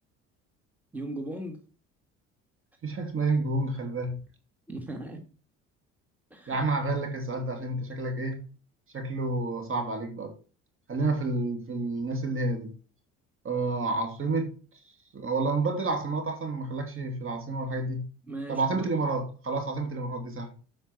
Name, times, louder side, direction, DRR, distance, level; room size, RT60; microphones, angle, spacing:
voice 1, 0.9-1.6 4.7-5.3 6.3-6.6 12.0-12.1 18.2-18.9, right 1 dB, 5° right, 1.8 m, -38 dB
voice 2, 2.8-4.2 6.5-8.4 8.9-10.3 10.9-12.7 13.4-14.5 15.1-18.0 18.5-20.5, right 3 dB, 40° right, 2.6 m, -29 dB
8.1 x 5.3 x 6.0 m
supercardioid pair, 75°, 32 cm